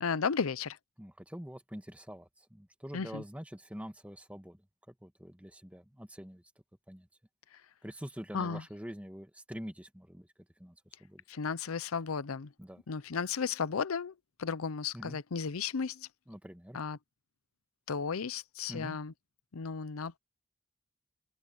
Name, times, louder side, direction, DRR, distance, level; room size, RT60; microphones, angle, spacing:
voice 1, 0.0-0.8 2.9-3.2 8.3-8.6 11.3-12.5 12.9-16.1 16.7-17.0 17.9-19.1 19.5-20.2, left 5 dB, 90° left, 0.6 m, -34 dB
voice 2, 1.0-4.6 4.9-6.4 6.9-7.1 7.8-10.3 10.6-11.2 12.6-12.8 14.9-15.2 16.3-16.8 18.7-19.0, equal, 5° right, 1.8 m, -45 dB
head